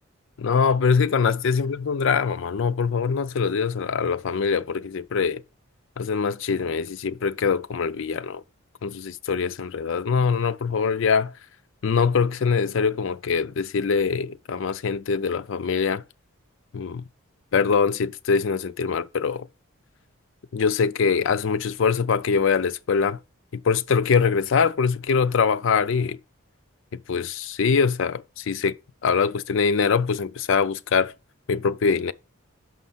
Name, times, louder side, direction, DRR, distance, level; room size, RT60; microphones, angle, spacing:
voice 1, 0.4-5.4 6.0-8.4 8.8-11.3 11.8-16.0 16.7-17.0 17.5-19.5 20.5-23.2 23.5-26.2 26.9-28.7 29.0-31.1 31.5-32.1, left 5 dB, 60° left, 0.4 m, -23 dB
6.1 x 5.3 x 5.6 m
head